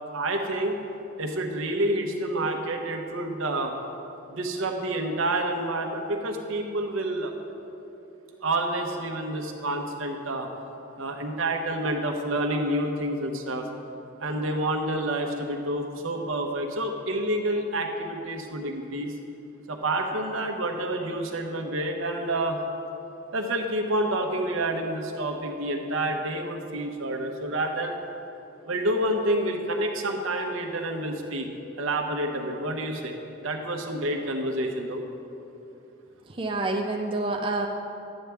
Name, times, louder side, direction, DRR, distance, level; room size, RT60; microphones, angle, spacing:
voice 1, 0.1-0.7 1.2-3.7 4.3-7.3 8.4-10.5 11.0-13.7 14.2-19.1 19.7-22.6 23.3-27.9 28.7-31.5 31.8-33.2 33.4-35.0, right 1 dB, 80° right, 3 dB, 0.9 m, -28 dB
voice 2, 36.4-37.7, right 2 dB, 25° right, 1 dB, 0.5 m, -27 dB
10.5 x 8.9 x 3.4 m, 2.9 s
head